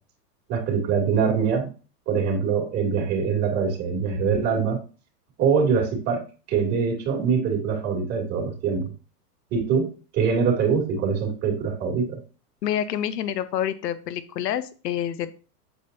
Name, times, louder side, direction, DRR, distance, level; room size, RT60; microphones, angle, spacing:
voice 1, 0.5-1.7 2.1-4.8 5.4-6.2 6.5-8.9 9.5-12.2, right 6 dB, 30° right, 0 dB, 3.1 m, -23 dB
voice 2, 12.6-15.3, left 10 dB, 80° left, 12 dB, 1.2 m, -27 dB
8.3 x 7.5 x 2.9 m, 0.35 s
hypercardioid pair, 140°, 48 cm